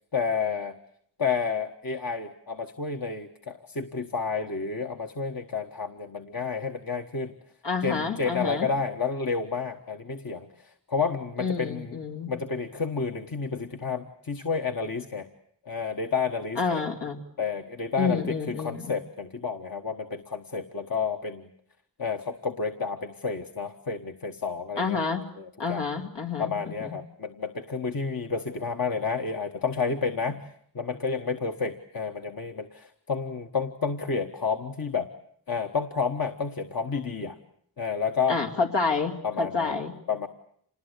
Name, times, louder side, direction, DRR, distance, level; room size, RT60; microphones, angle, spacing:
voice 1, 0.1-0.8 1.2-7.3 7.8-12.0 12.3-15.3 15.6-16.8 17.4-21.5 22.0-25.0 25.4-25.9 26.4-30.5 30.7-35.1 35.5-37.4 37.8-38.4 39.2-39.8 40.1-40.3, left 5 dB, 55° left, 4 dB, 1.4 m, -30 dB
voice 2, 7.6-8.7 11.4-12.3 16.6-17.2 18.0-18.9 24.8-25.2 25.6-27.0 38.3-39.9, left 4 dB, 85° left, 2 dB, 2.8 m, -29 dB
27.0 x 20.0 x 8.3 m, 0.66 s
cardioid pair, 50°, 41 cm